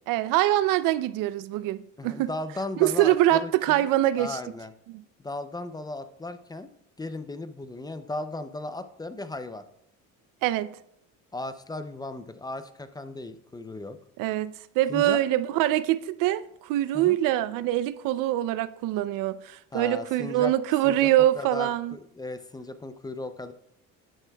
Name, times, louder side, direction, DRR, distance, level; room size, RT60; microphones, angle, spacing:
voice 1, 0.1-2.3 2.8-4.4 4.9-5.0 10.4-10.7 14.2-21.9, right 14 dB, 80° right, 0.5 m, -24 dB
voice 2, 2.0-3.9 4.2-4.7 5.2-6.7 7.0-9.6 11.3-14.0 14.9-15.2 16.9-17.2 19.7-20.5 20.8-21.1 21.4-23.5, left 2 dB, 10° left, 0.5 m, -36 dB
11.0 x 10.0 x 2.3 m
cardioid pair, 120°, 32 cm